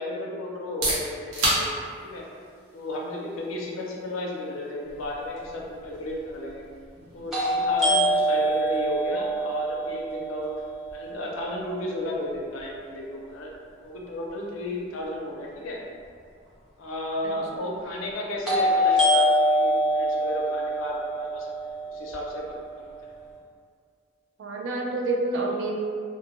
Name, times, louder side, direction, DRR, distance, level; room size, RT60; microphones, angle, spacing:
voice 1, 0.0-2.3 2.7-6.7 7.1-10.5 10.9-13.5 13.8-15.8 16.8-22.9, left 1 dB, 85° left, -2 dB, 0.4 m, -34 dB
sound 1, 0.5-16.2, right 1 dB, 85° right, 0.7 m, -37 dB
sound 2, 5.4-5.5 7.3-11.2 18.5-22.5, equal, ahead, 0.5 m, -24 dB
voice 2, 17.2-17.6 24.4-25.7, right 2 dB, 70° right, 0 dB, 0.3 m, -29 dB
2.1 x 2.0 x 3.0 m, 2.1 s
head